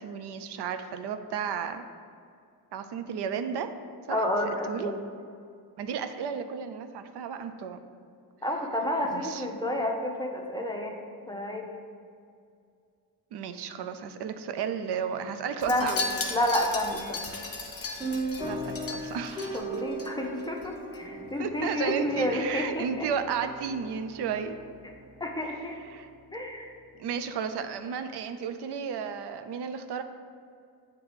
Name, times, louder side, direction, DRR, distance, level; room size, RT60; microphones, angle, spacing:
voice 1, 0.0-1.8 2.7-3.7 4.1-4.2 4.6-4.9 5.8-7.8 9.0-9.4 13.3-16.0 18.4-19.8 21.4-24.6 25.5-26.1 27.0-30.0, right 7 dB, 80° right, 9 dB, 0.5 m, -33 dB
voice 2, 4.1-5.0 8.4-11.0 11.3-11.7 15.7-16.0 16.3-17.2 19.5-23.1 25.2-25.8 26.3-26.7, left 1 dB, 10° left, 1 dB, 0.6 m, -30 dB
Wind chime, 15.6-20.1 20.4-20.7 20.9-21.0, left 4 dB, 35° left, 0.9 m, -36 dB
sound 1, 18.0-26.1, right 2 dB, 10° right, 1.1 m, -38 dB
7.2 x 3.0 x 5.0 m, 2.3 s
cardioid pair, 110°, 40 cm